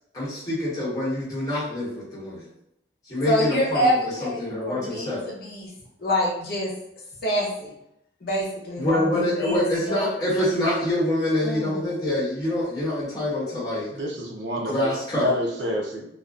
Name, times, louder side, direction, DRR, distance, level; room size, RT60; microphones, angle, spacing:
voice 1, 0.1-2.4 3.0-5.2 8.8-13.9 14.6-15.3, left 1 dB, 20° left, -10 dB, 1.1 m, -25 dB
voice 2, 3.3-5.7 6.0-6.7 7.2-7.7 8.2-10.1 11.4-11.8, equal, 55° left, -5 dB, 0.7 m, -26 dB
voice 3, 13.9-16.1, equal, 75° right, 0 dB, 0.5 m, -28 dB
2.4 x 2.2 x 2.4 m, 0.78 s
head